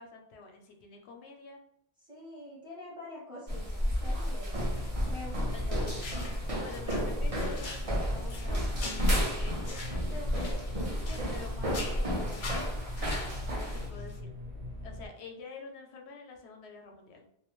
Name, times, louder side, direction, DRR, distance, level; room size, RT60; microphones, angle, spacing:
voice 1, 0.0-1.6 5.5-5.7 6.6-12.5 13.5-14.3 14.8-17.3, left 4 dB, 90° left, 2 dB, 0.9 m, -48 dB
voice 2, 2.1-4.7 5.1-5.9, left 2 dB, 5° right, -6 dB, 0.9 m, -45 dB
sound 1, 3.5-13.9, equal, 40° right, 0.7 m, -32 dB
sound 2, 4.7-15.1, left 1 dB, 85° right, 1.0 m, -43 dB
sound 3, 5.8-6.4 6.7-11.4 11.6-14.2, left 3 dB, 55° left, 0.7 m, -44 dB
2.5 x 2.1 x 2.9 m, 0.74 s
omnidirectional pair, 1.1 m